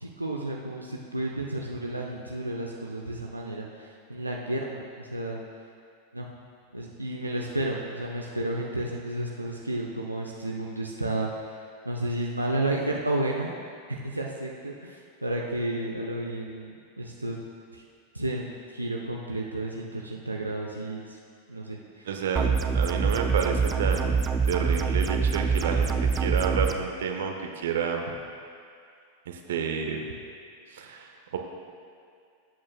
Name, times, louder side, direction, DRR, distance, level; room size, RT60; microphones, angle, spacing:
voice 1, 0.0-5.4 6.1-6.3 6.7-13.5 13.9-17.4 17.7-17.8 18.1-21.2 21.5-22.1, right 1 dB, 85° right, -2 dB, 0.7 m, -32 dB
voice 2, 22.0-28.0 29.3-30.0 30.7-31.4, right 6 dB, 60° right, 3 dB, 1.0 m, -30 dB
sound 1, 22.4-26.7, right 5 dB, 20° right, 0.5 m, -25 dB
18.5 x 8.6 x 2.2 m, 2.3 s
figure-of-eight pair, 90°, 0 cm